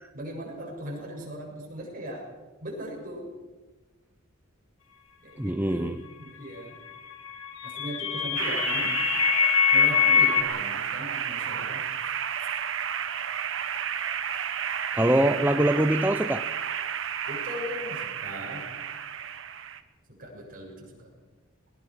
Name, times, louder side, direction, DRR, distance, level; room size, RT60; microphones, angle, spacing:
voice 1, 0.1-2.3 2.6-3.3 5.2-6.0 6.2-6.8 7.6-9.0 9.7-12.1 17.3-18.7 20.1-21.1, equal, 40° right, 7.5 m, -39 dB
voice 2, 5.4-6.0 14.9-16.5, right 1 dB, 10° right, 0.6 m, -24 dB
sound 1, 7.3-10.4, left 7 dB, 75° left, 2.3 m, -23 dB
sound 2, 8.4-19.8, right 8 dB, 60° right, 1.3 m, -32 dB
21.5 x 20.5 x 6.6 m
head